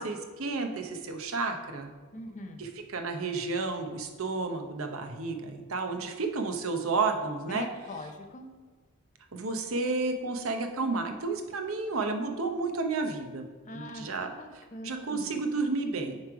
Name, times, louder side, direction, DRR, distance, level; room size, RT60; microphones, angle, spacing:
voice 1, 0.0-1.9 2.6-7.7 9.3-13.5 13.7-14.3 14.8-16.2, right 3 dB, 65° right, 5 dB, 0.7 m, -31 dB
voice 2, 2.1-2.6 7.5-8.5 13.7-15.3, left 1 dB, 35° left, 5 dB, 0.6 m, -42 dB
9.5 x 3.3 x 4.7 m, 1.4 s
head